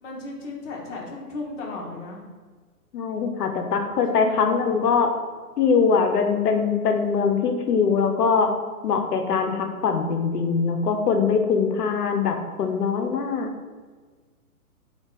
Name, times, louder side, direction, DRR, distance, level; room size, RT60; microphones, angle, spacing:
voice 1, 0.0-2.2 3.8-4.4 11.5-11.8, left 3 dB, 50° left, -2 dB, 0.9 m, -36 dB
voice 2, 2.9-5.2 5.6-8.5 8.8-13.5, left 5 dB, 85° left, 5 dB, 0.7 m, -22 dB
2.7 x 2.4 x 3.7 m, 1.5 s
hypercardioid pair, 160°, 46 cm